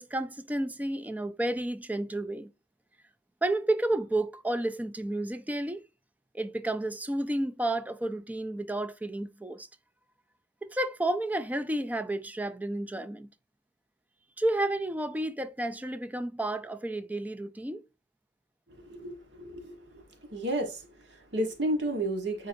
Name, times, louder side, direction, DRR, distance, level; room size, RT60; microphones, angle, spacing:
voice 1, 0.0-2.5 3.4-5.8 6.3-9.7 10.6-13.3 14.4-17.8, right 1 dB, 10° right, 0.4 m, -31 dB
voice 2, 18.8-20.0 20.3-22.5, right 1 dB, 70° right, 1.4 m, -32 dB
9.6 x 3.9 x 2.7 m
head